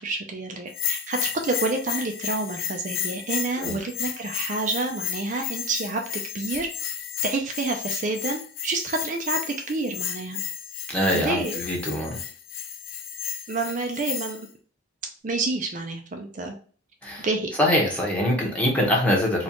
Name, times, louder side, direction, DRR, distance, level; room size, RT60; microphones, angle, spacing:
voice 1, 0.0-6.0 6.3-6.7 7.2-10.4 11.1-11.6 13.5-14.4 15.2-16.5 17.2-17.5, right 3 dB, 40° right, 3 dB, 0.5 m, -28 dB
Bell, 0.7-14.5, left 9 dB, 90° left, 0.5 m, -33 dB
voice 2, 10.9-12.2 17.0-17.2 17.6-19.4, left 1 dB, 5° left, -3 dB, 1.0 m, -23 dB
4.2 x 2.4 x 2.9 m, 0.44 s
head